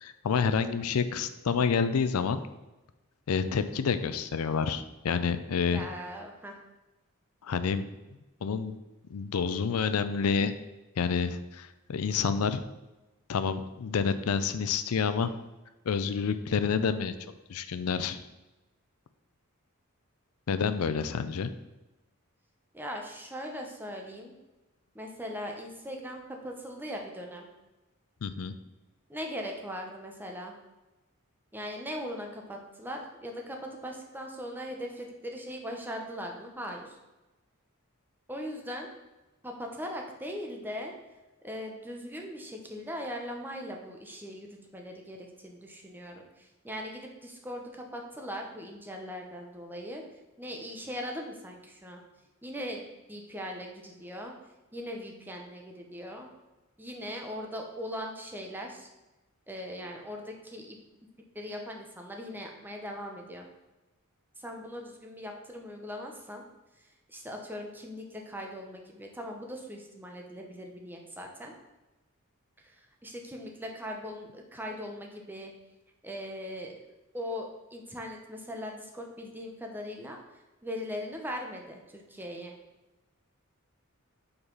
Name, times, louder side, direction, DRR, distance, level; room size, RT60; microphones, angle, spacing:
voice 1, 0.0-2.4 3.3-5.9 7.4-7.9 8.4-8.8 9.1-10.5 11.0-12.6 13.3-15.3 15.9-17.1 17.5-18.2 20.5-21.5 28.2-28.5, left 6 dB, 90° left, 11 dB, 0.4 m, -28 dB
voice 2, 5.7-6.6 22.7-24.3 24.9-27.5 29.1-30.5 31.5-37.0 38.3-38.9 39.4-40.9 41.4-50.0 50.4-52.0 52.4-54.3 54.7-56.3 56.8-58.9 59.5-60.8 61.3-63.5 64.4-66.4 66.8-71.5 72.6-75.5 76.0-76.7 77.1-82.5, equal, 10° right, 1 dB, 0.8 m, -40 dB
5.6 x 4.1 x 5.3 m, 1.0 s
head